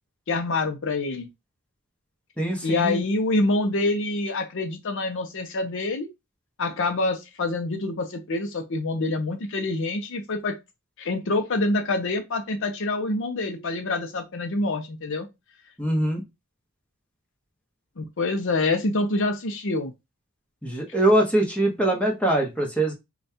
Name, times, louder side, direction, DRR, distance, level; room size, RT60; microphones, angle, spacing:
voice 1, 0.3-1.3 2.6-6.1 6.6-10.6 11.0-15.3 18.0-19.9, left 2 dB, 60° left, 0.6 m, -26 dB
voice 2, 2.4-3.0 15.8-16.2 20.6-22.9, right 1 dB, 5° left, 1.1 m, -23 dB
5.4 x 2.3 x 2.8 m
head